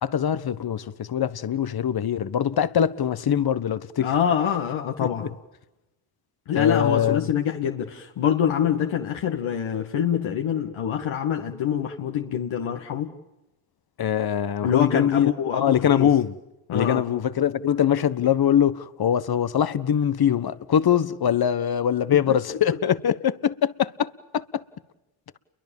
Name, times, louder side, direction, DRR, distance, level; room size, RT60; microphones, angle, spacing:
voice 1, 0.0-4.1 5.2-5.3 6.5-7.3 14.0-16.3 16.7-24.6, left 9 dB, 45° left, 1.4 m, -23 dB
voice 2, 4.0-5.3 6.5-13.1 14.6-16.1 16.7-17.0 22.1-22.7, left 8 dB, 70° left, 2.1 m, -25 dB
30.0 x 23.0 x 7.3 m
supercardioid pair, 65°, 50 cm